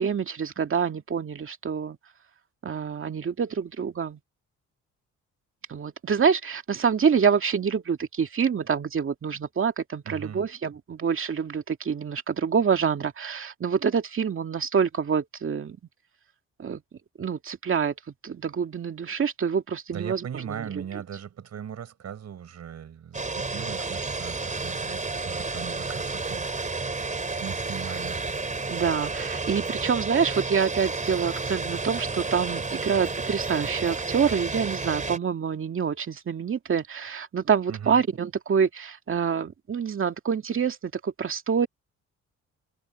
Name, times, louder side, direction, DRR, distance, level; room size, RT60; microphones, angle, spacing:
voice 1, 0.0-2.0 2.6-4.2 5.7-15.8 16.6-16.8 17.2-17.9 18.2-20.7 28.7-41.7, right 6 dB, 45° right, 2.3 m, -26 dB
voice 2, 10.1-10.4 19.9-26.9 27.4-28.3 37.7-38.0, right 8 dB, 60° right, 5.8 m, -39 dB
sound 1, 23.1-35.2, right 3 dB, 25° right, 4.0 m, -31 dB
cardioid pair, 90°, 30 cm